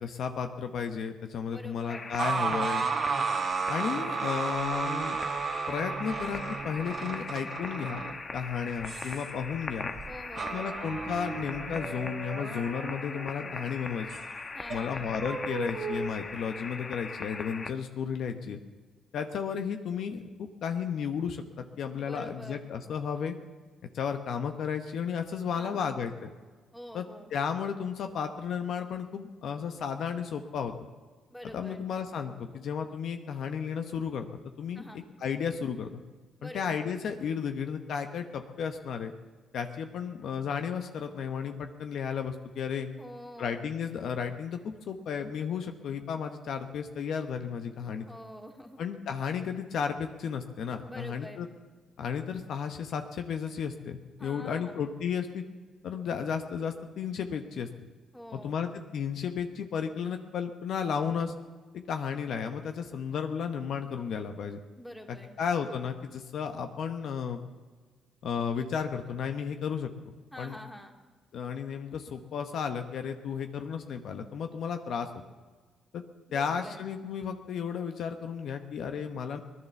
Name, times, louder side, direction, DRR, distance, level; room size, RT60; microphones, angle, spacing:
voice 1, 0.0-2.9 3.7-5.2 5.7-8.0 8.3-9.9 10.5-14.1 14.7-18.6 19.1-23.3 23.9-26.3 26.9-27.0 27.3-30.7 31.5-34.3 34.6-34.8 35.2-35.9 36.4-39.1 39.5-42.9 43.4-44.6 44.9-48.1 48.8-51.5 52.0-55.4 55.8-57.7 58.3-61.3 61.7-64.6 65.1-67.4 68.2-69.9 70.4-70.6 71.3-75.2 75.9-76.0 76.3-79.4, left 7 dB, 70° left, 6 dB, 1.0 m, -33 dB
voice 2, 1.5-2.1 10.0-10.9 14.5-15.1 22.0-22.7 25.5-26.0 26.7-27.3 31.3-31.8 34.7-35.0 36.4-36.8 43.0-43.6 48.1-48.8 50.8-51.5 54.2-54.7 58.1-58.6 64.8-65.4 70.3-70.9 76.3-76.9, equal, 5° left, 2 dB, 2.3 m, -46 dB
sound 1, 1.9-17.7, left 4 dB, 35° left, 1.1 m, -41 dB
sound 2, 2.2-13.7 14.1-14.2 14.7-16.6, right 5 dB, 50° right, 1.2 m, -34 dB
18.0 x 11.0 x 7.0 m, 1.4 s
cardioid pair, 90°, 0 cm